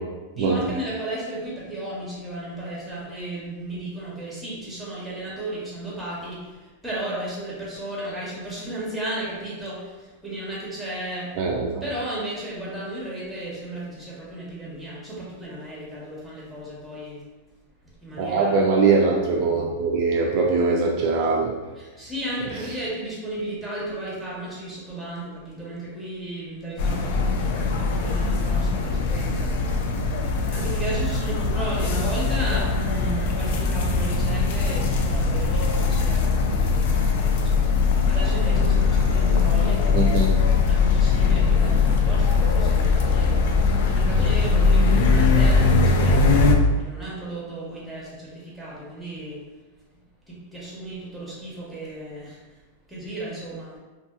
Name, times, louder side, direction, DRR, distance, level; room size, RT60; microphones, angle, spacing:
voice 1, 0.3-11.3 11.8-17.2 18.0-18.6 21.8-29.5 30.4-37.6 38.1-43.4 43.8-46.4 46.8-49.4 50.3-52.4 52.9-53.7, right 1 dB, ahead, -6 dB, 0.9 m, -34 dB
voice 2, 11.4-11.7 18.2-21.6 39.9-40.4, right 4 dB, 50° right, -1 dB, 0.3 m, -22 dB
sound 1, 26.8-46.6, left 4 dB, 65° left, 0.3 m, -21 dB
2.6 x 2.5 x 2.3 m, 1.2 s
supercardioid pair, 140°, 0 cm